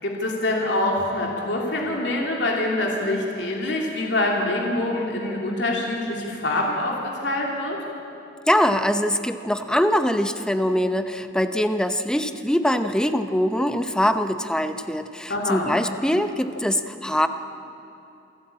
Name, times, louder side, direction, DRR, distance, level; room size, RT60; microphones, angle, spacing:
voice 1, 0.0-7.8 15.3-15.7, left 1 dB, 75° left, -1 dB, 2.9 m, -25 dB
voice 2, 8.5-17.3, equal, 5° left, 9 dB, 0.7 m, -23 dB
27.5 x 12.0 x 8.7 m, 2.7 s
head